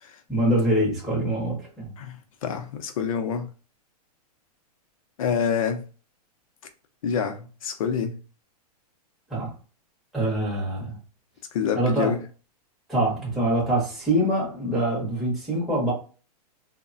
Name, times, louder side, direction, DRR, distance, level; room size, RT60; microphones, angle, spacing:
voice 1, 0.3-1.9 9.3-9.5 10.1-11.0 11.7-12.1 12.9-15.9, right 1 dB, ahead, 0.7 m, -24 dB
voice 2, 2.0-3.5 5.2-5.8 7.0-8.2 11.5-12.2, left 7 dB, 55° left, 0.5 m, -27 dB
3.1 x 2.1 x 2.5 m
hypercardioid pair, 170°, 21 cm